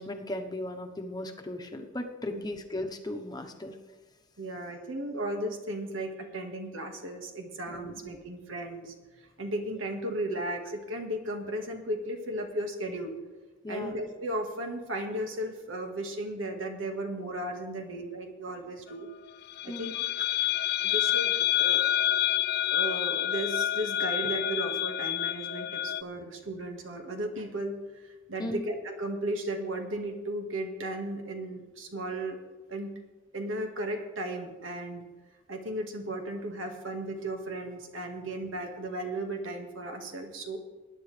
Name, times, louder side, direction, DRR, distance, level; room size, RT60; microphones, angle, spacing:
voice 1, 0.0-3.8 7.7-8.0 13.6-13.9 19.7-19.9 28.4-28.6, left 1 dB, 20° left, 4 dB, 1.0 m, -36 dB
voice 2, 4.4-8.9 9.4-13.2 13.7-19.1 19.6-20.0 20.8-21.8 22.7-32.4 32.7-33.0 33.3-35.0 35.5-40.6, right 1 dB, 85° right, 4 dB, 1.8 m, -35 dB
sound 1, 19.5-26.0, left 12 dB, 55° left, 0.4 m, -28 dB
21.0 x 10.0 x 3.4 m, 1.3 s
head